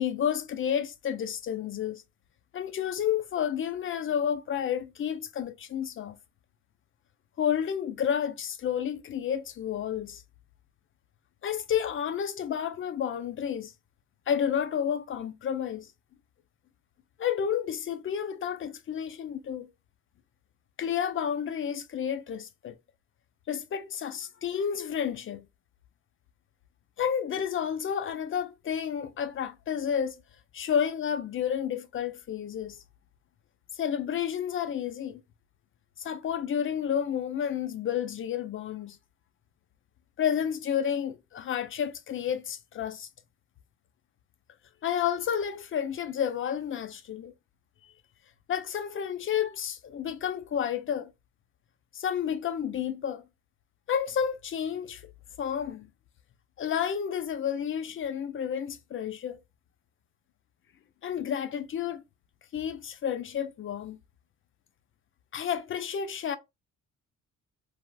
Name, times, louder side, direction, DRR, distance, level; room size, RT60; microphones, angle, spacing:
voice 1, 0.0-2.0 2.5-6.2 7.4-10.2 11.4-13.7 14.3-15.9 17.2-19.7 20.8-22.8 23.5-25.5 27.0-30.2 30.5-32.8 33.7-35.2 36.0-39.0 40.2-43.1 44.8-47.3 48.5-51.1 51.9-53.2 53.9-55.0 55.4-55.9 56.6-59.4 61.0-62.0 62.5-64.0 65.3-66.4, left 8 dB, 45° left, 0.5 m, -30 dB
3.4 x 2.3 x 2.2 m
cardioid pair, 90°, 30 cm